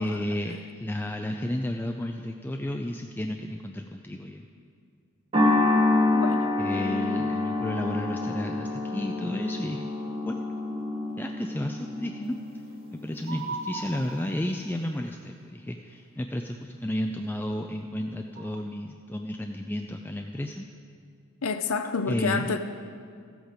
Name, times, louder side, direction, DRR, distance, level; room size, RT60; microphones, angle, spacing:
voice 1, 0.0-4.4 6.6-9.8 10.3-10.4 11.2-12.3 12.9-20.7 22.1-22.6, left 1 dB, 10° left, 3 dB, 0.3 m, -32 dB
sound 1, 5.3-13.8, left 2 dB, 25° right, 1.1 m, -27 dB
voice 2, 6.1-6.5 21.4-22.6, left 5 dB, 80° left, 10 dB, 0.6 m, -29 dB
sound 2, 13.2-14.6 18.3-18.6, right 3 dB, 50° right, 2.5 m, -37 dB
13.5 x 8.0 x 5.0 m, 2.2 s
head